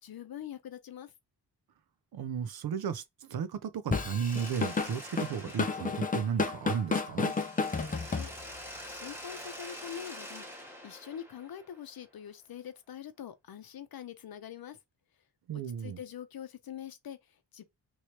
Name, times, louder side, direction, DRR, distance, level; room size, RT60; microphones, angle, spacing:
voice 1, 0.0-1.1 7.9-14.8 15.5-17.6, left 9 dB, 60° left, 0.7 m, -45 dB
voice 2, 2.1-7.3 15.5-16.0, right 7 dB, 60° right, 0.6 m, -34 dB
Drum kit / Drum, 3.9-8.7, left 4 dB, 20° left, 0.4 m, -31 dB
Mechanisms, 4.2-6.8 7.2-12.0, equal, 5° right, 1.1 m, -46 dB
3.1 x 3.0 x 2.8 m
wide cardioid pair, 155°, 42 cm